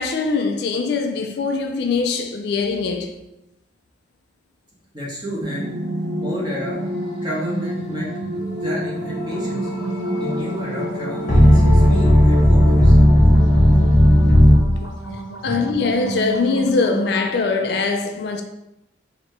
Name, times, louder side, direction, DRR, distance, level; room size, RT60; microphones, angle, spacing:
voice 1, 0.0-3.2 15.4-18.4, left 4 dB, 55° left, 0.3 m, -22 dB
voice 2, 4.9-5.7 6.2-6.8 7.2-9.7 10.2-12.9 15.0-15.6, equal, 20° right, 1.2 m, -31 dB
sound 1, 5.4-13.4, right 2 dB, 55° right, 0.4 m, -32 dB
sound 2, 5.6-14.6, equal, 40° left, 0.9 m, -16 dB
sound 3, 9.2-17.2, right 3 dB, 85° left, 0.8 m, -32 dB
4.2 x 2.8 x 3.3 m
head